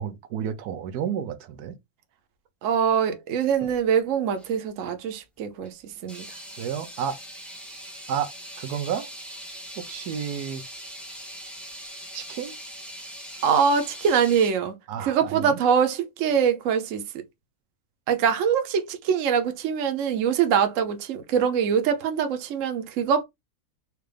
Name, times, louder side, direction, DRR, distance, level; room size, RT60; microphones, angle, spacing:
voice 1, 0.0-1.7 6.6-7.2 8.1-8.3 8.6-9.1 9.8-10.6 12.1-12.5 14.9-15.6, right 8 dB, 85° right, 1.2 m, -31 dB
voice 2, 2.6-6.3 13.4-14.7 15.0-17.1 18.1-23.2, right 7 dB, 60° right, 1.0 m, -23 dB
sound 1, 3.5-3.8 4.4-4.6 5.6-5.7 6.1-14.5, equal, ahead, 0.7 m, -41 dB
4.6 x 2.5 x 3.3 m
omnidirectional pair, 1.6 m